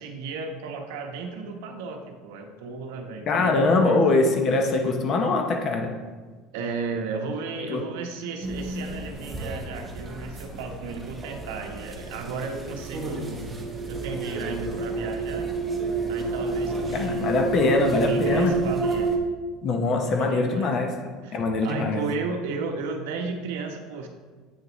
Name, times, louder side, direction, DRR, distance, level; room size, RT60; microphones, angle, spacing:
voice 1, 0.0-4.0 6.5-13.4 13.9-15.5 16.1-17.4 17.9-19.1 20.2-20.7 21.2-24.1, right 4 dB, 90° right, 4 dB, 0.9 m, -34 dB
voice 2, 3.3-5.9 7.7-7.8 16.9-18.5 19.6-21.0 21.3-22.0, left 3 dB, 30° left, 4 dB, 0.6 m, -22 dB
sound 1, 8.4-19.2, right 3 dB, 10° right, 0.7 m, -30 dB
8.1 x 6.5 x 3.0 m, 1.4 s
cardioid pair, 175°, 0 cm